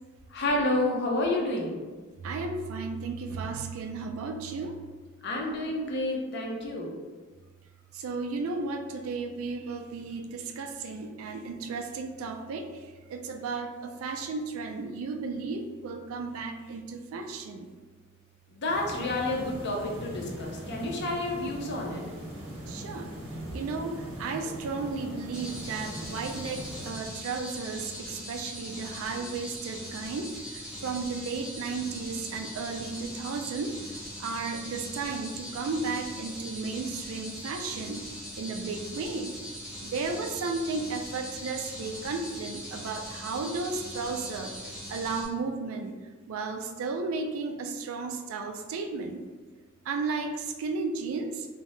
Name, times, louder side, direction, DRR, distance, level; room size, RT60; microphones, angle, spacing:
voice 1, 0.3-1.8 5.2-7.0 18.5-22.1, left 2 dB, 55° left, 0 dB, 0.5 m, -30 dB
voice 2, 2.2-4.8 7.9-17.7 22.6-23.1 23.5-33.7 34.2-38.0 38.4-39.4 39.8-44.5 44.9-46.0 46.3-49.2 49.9-51.5, right 4 dB, 70° right, 5 dB, 0.3 m, -34 dB
sound 1, 18.7-26.9, right 1 dB, 85° right, 0.8 m, -40 dB
sound 2, 25.3-45.3, equal, 5° right, 0.7 m, -41 dB
2.7 x 2.1 x 3.0 m, 1.4 s
head